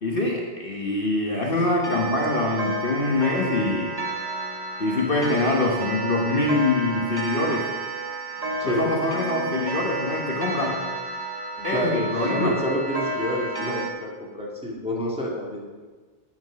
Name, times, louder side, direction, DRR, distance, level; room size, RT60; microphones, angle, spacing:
voice 1, 0.0-3.9 4.8-7.7 8.6-10.8 11.6-12.5, left 2 dB, 45° left, -2 dB, 1.3 m, -24 dB
Clock, 1.8-13.9, right 3 dB, 25° right, 0.7 m, -31 dB
voice 2, 8.6-9.0 11.6-15.8, equal, 5° right, -4 dB, 1.9 m, -29 dB
9.3 x 6.1 x 6.2 m, 1.4 s
omnidirectional pair, 1.3 m